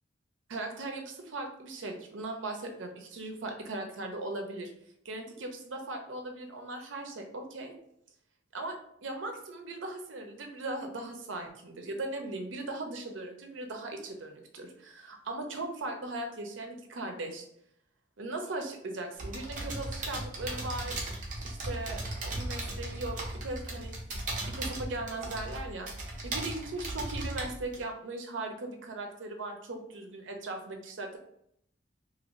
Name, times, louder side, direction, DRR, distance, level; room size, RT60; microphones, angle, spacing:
voice 1, 0.5-4.7 5.0-7.7 8.5-17.5 18.2-21.0 21.4-24.0 24.5-31.2, right 2 dB, 80° right, 4 dB, 0.6 m, -38 dB
sound 1, 19.2-27.8, right 2 dB, 40° right, 0.7 m, -37 dB
2.8 x 2.6 x 3.0 m, 0.73 s
head